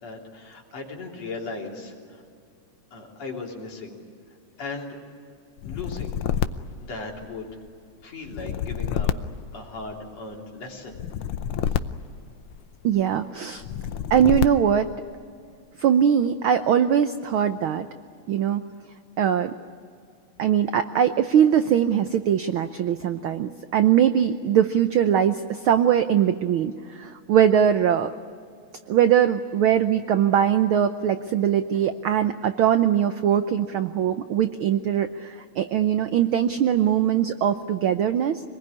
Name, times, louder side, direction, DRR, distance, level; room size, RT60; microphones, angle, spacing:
voice 1, 0.0-2.2 2.9-4.0 4.6-5.0 5.6-6.2 6.8-7.6 8.0-9.1 9.5-11.0 11.7-11.8, left 3 dB, 60° left, -1 dB, 4.5 m, -37 dB
sound 1, 5.6-7.6 8.3-10.2 10.9-12.8 13.6-14.9, left 9 dB, 75° left, 1.2 m, -29 dB
voice 2, 12.8-13.6 14.1-14.9 15.8-17.9 18.3-18.6 19.2-19.5 20.4-28.1 28.9-38.4, right 9 dB, 85° right, 9 dB, 1.1 m, -21 dB
26.0 x 21.0 x 9.8 m, 2.3 s
omnidirectional pair, 3.3 m